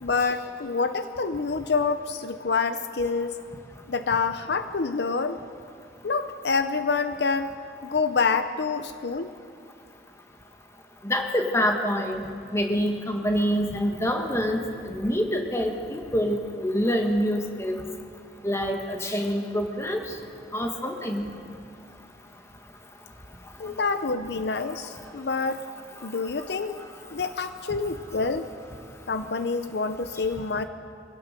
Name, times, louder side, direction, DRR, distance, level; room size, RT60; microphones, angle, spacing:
voice 1, 0.0-3.4 3.9-5.4 6.0-7.5 7.9-9.3 23.6-25.7 26.0-26.8 27.1-28.5 29.1-30.6, left 4 dB, 65° left, 10 dB, 0.7 m, -27 dB
voice 2, 11.0-12.2 12.5-14.6 14.9-17.8 18.4-20.0 20.5-21.3, equal, 15° left, 3 dB, 1.6 m, -26 dB
24.0 x 16.5 x 6.8 m, 2.4 s
head